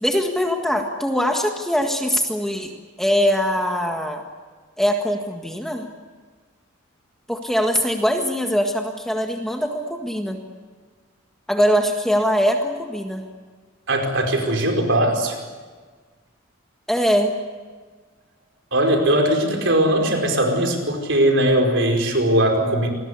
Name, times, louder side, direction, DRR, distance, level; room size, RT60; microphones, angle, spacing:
voice 1, 0.0-2.7 3.0-4.2 4.8-5.9 7.3-10.4 11.5-13.2 16.9-17.4, equal, ahead, 3 dB, 1.7 m, -22 dB
voice 2, 13.9-15.4 18.7-22.9, right 1 dB, 60° right, 3 dB, 5.1 m, -19 dB
27.5 x 20.5 x 8.3 m, 1.5 s
head